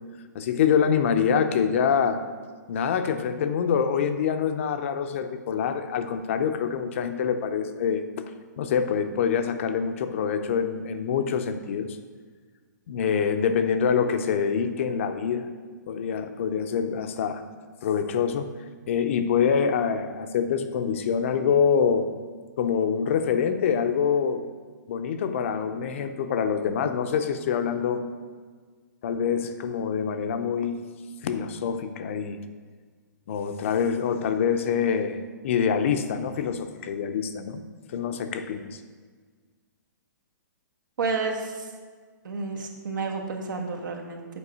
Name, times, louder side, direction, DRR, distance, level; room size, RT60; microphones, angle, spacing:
voice 1, 0.3-2.2 2.7-8.3 8.6-11.9 12.9-15.5 15.9-17.4 17.8-18.5 18.9-22.1 22.6-24.4 24.9-28.0 29.0-30.8 31.2-32.4 33.3-35.2 35.4-37.6 37.9-38.6, left 7 dB, 40° left, 8 dB, 0.5 m, -25 dB
voice 2, 41.0-41.7 42.2-44.3, right 4 dB, 75° right, 2 dB, 1.4 m, -30 dB
8.4 x 4.7 x 6.1 m, 1.5 s
hypercardioid pair, 160°, 10 cm